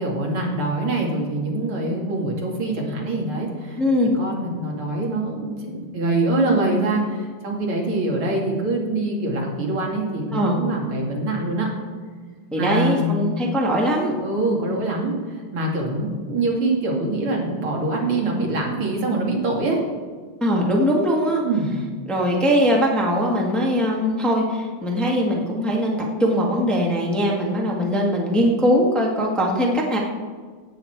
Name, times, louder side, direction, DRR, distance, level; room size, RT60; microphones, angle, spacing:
voice 1, 0.0-3.8 4.1-11.7 12.6-13.3 14.2-19.8 21.4-21.7, right 2 dB, 75° right, -2 dB, 3.2 m, -24 dB
voice 2, 3.8-4.1 10.3-10.6 12.5-14.1 20.4-21.4 22.1-30.0, equal, ahead, -2 dB, 1.5 m, -21 dB
17.0 x 8.6 x 4.6 m, 1.5 s
omnidirectional pair, 2.4 m